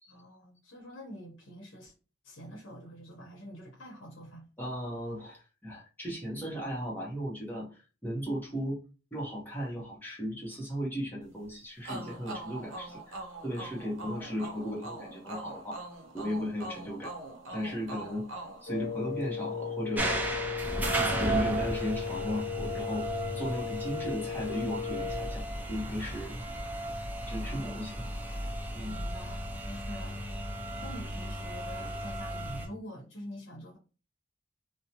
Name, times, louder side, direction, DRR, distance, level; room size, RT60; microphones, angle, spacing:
voice 1, 0.1-1.9 2.2-4.4 27.3-28.1 28.7-33.8, equal, 75° left, 0.9 m, -46 dB
voice 2, 4.6-8.8 9.1-15.8 16.1-17.1 17.5-18.3 18.6-20.1 21.0-23.1 23.3-26.4 27.3-28.0 28.7-29.0, equal, 10° left, 0.8 m, -36 dB
sound 1, 11.8-19.4, right 2 dB, 75° right, 0.6 m, -43 dB
Wind instrument woodwind instrument, 18.7-25.4, left 6 dB, 55° left, 0.5 m, -36 dB
sound 2, 20.0-32.7, right 1 dB, 10° right, 0.4 m, -35 dB
2.6 x 2.1 x 2.8 m
head